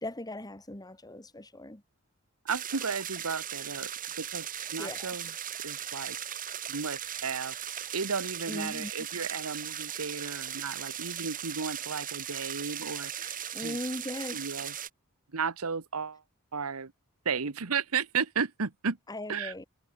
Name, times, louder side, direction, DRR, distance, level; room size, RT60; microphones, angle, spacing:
voice 1, 0.0-1.8 4.8-5.2 8.5-8.9 13.5-14.5 19.1-19.6, left 1 dB, 15° left, 2.1 m, -38 dB
voice 2, 2.4-3.9 4.2-5.3 5.6-6.2 6.7-7.6 7.9-13.8 14.3-14.7 15.3-16.2 16.5-16.9 17.2-19.0 19.3-19.5, right 5 dB, 80° right, 1.1 m, -34 dB
sound 1, 2.5-14.9, right 10 dB, 40° right, 2.5 m, -38 dB
head